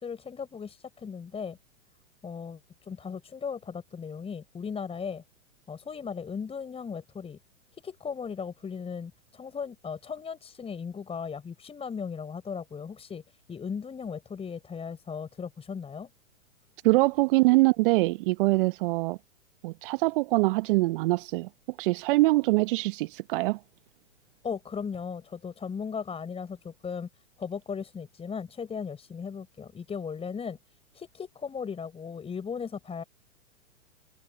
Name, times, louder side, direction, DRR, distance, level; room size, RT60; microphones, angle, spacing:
voice 1, 0.0-1.6 2.2-5.2 5.7-7.4 7.8-13.2 13.5-16.1 24.4-27.1 27.4-30.6 30.9-33.0, left 6 dB, 15° left, 5.0 m, -37 dB
voice 2, 16.8-19.2 19.6-21.5 21.8-23.6, right 21 dB, 45° right, 1.1 m, -23 dB
hypercardioid pair, 110°, 39 cm